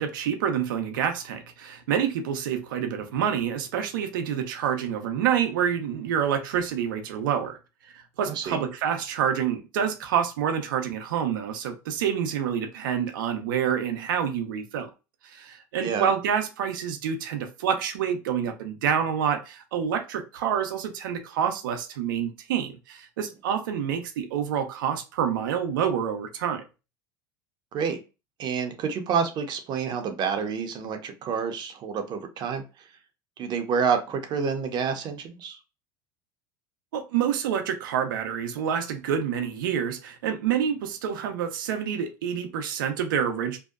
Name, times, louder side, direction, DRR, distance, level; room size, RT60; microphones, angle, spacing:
voice 1, 0.0-7.6 7.9-14.9 15.2-26.6 36.9-43.6, right 8 dB, 90° right, 0.5 m, -27 dB
voice 2, 8.3-8.6 15.8-16.1 27.7-28.0 28.4-32.6 33.4-35.6, right 6 dB, 45° right, 0.6 m, -28 dB
2.7 x 2.1 x 2.3 m
supercardioid pair, 110°, 11 cm